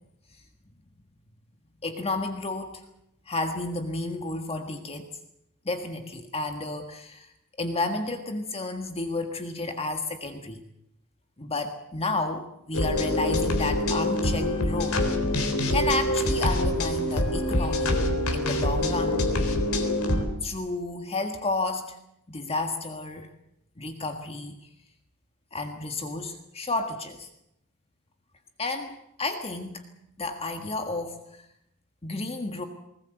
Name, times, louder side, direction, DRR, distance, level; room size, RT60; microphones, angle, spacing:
voice 1, 1.8-2.8 3.3-5.1 5.6-7.3 7.6-10.6 11.4-15.0 15.7-19.2 20.4-22.0 22.3-23.3 23.8-24.5 25.5-27.3 28.6-29.8 30.2-31.2 32.0-32.6, left 2 dB, 25° left, 6 dB, 1.7 m, -31 dB
sound 1, 12.7-20.2, left 1 dB, 70° left, 3.8 m, -25 dB
20.0 x 20.0 x 8.0 m, 0.80 s
head